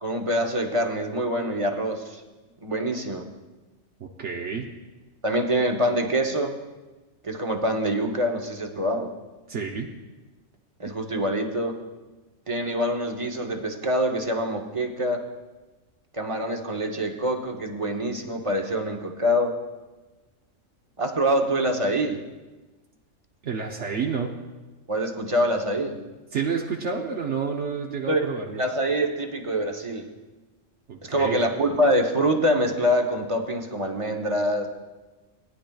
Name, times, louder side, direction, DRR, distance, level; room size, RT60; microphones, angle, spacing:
voice 1, 0.0-2.2 2.6-3.2 5.2-6.5 7.2-9.1 10.8-11.8 12.5-15.2 16.1-19.6 21.0-22.2 24.9-26.0 28.1-28.3 28.6-30.1 31.0-34.7, equal, 30° right, 3 dB, 0.8 m, -25 dB
voice 2, 4.0-4.7 9.5-9.9 23.4-24.3 26.3-28.6 30.9-31.4, right 5 dB, 65° right, 1 dB, 1.1 m, -29 dB
18.5 x 10.0 x 2.3 m, 1.2 s
omnidirectional pair, 1.3 m